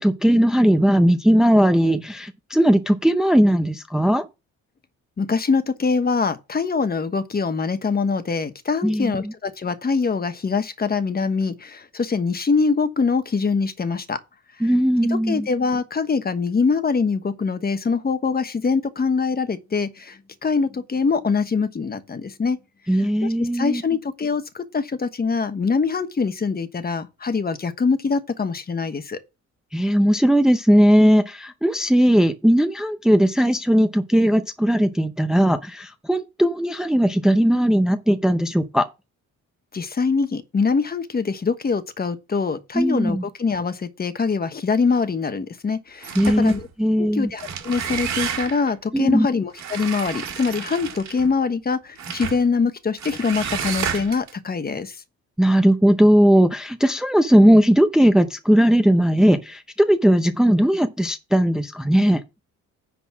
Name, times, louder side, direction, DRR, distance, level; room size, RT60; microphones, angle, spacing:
voice 1, 0.0-4.2 8.8-9.3 14.6-15.5 22.9-23.8 29.7-38.9 42.7-43.2 46.1-46.5 46.8-47.3 48.9-49.3 55.4-62.2, equal, ahead, 0.7 m, -18 dB
voice 2, 5.2-14.2 15.3-22.6 23.4-29.2 39.7-46.7 47.0-54.9, left 4 dB, 30° left, 1.2 m, -23 dB
sound 1, 46.0-46.7 47.2-48.7 49.6-51.3 52.0-52.4 53.0-54.3, right 7 dB, 65° right, 2.3 m, -30 dB
10.0 x 4.2 x 6.0 m
cardioid pair, 90°, 30 cm